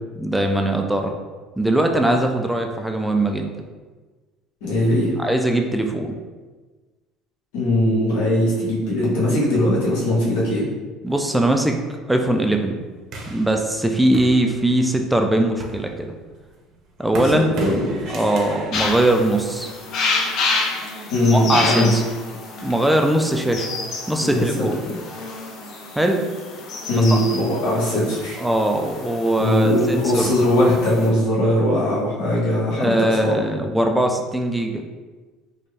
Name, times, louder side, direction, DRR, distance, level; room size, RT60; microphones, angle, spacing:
voice 1, 0.2-1.1 1.6-3.6 5.2-6.1 11.0-11.8 12.1-12.8 13.3-16.1 17.0-17.5 18.1-19.7 21.3-22.0 22.6-23.7 24.1-24.8 26.0-26.2 26.9-27.2 28.4-30.4 32.8-34.8, right 1 dB, 5° right, 3 dB, 0.3 m, -20 dB
voice 2, 4.6-5.1 7.5-10.7 17.3-18.1 21.1-21.9 24.2-24.6 26.9-28.4 29.4-32.9 33.2-33.4, left 1 dB, 85° left, -5 dB, 1.3 m, -20 dB
sound 1, 13.1-14.9 15.4-20.0, right 1 dB, 50° right, 0.8 m, -35 dB
sound 2, 18.7-31.1, left 3 dB, 55° left, 0.6 m, -29 dB
4.0 x 2.3 x 3.3 m, 1.3 s
cardioid pair, 130°, 0 cm